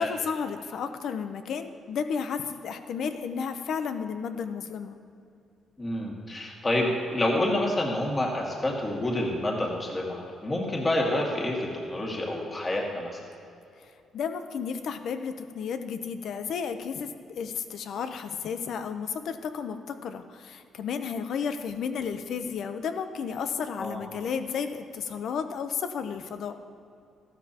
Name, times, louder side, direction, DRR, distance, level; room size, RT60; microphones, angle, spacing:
voice 1, 0.0-5.0 14.1-26.6, left 6 dB, 70° left, 9 dB, 0.7 m, -32 dB
voice 2, 5.8-13.2 23.8-24.0, left 1 dB, 25° left, -2 dB, 2.1 m, -28 dB
14.5 x 12.0 x 2.9 m, 2.6 s
cardioid pair, 90°, 0 cm